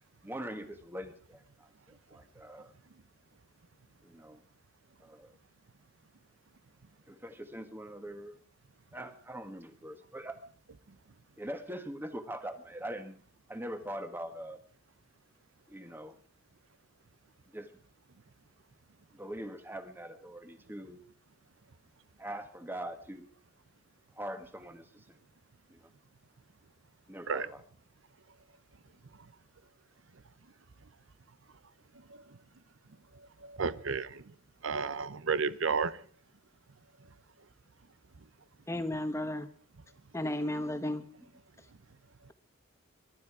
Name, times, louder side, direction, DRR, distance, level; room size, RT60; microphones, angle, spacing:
voice 1, 0.2-2.7 4.0-4.4 5.0-5.4 7.1-8.4 8.9-10.4 11.4-13.2 13.5-14.6 15.7-16.1 17.5-17.7 19.1-21.0 22.2-23.3 24.1-24.9 25.7-25.8 27.1-27.6, right 1 dB, 10° right, 8 dB, 1.5 m, -42 dB
voice 2, 33.4-34.2 34.6-36.0, right 5 dB, 75° right, 16 dB, 0.7 m, -31 dB
voice 3, 38.7-39.5 40.1-41.0, left 1 dB, 15° left, 9 dB, 1.2 m, -33 dB
23.5 x 12.0 x 4.9 m, 0.44 s
head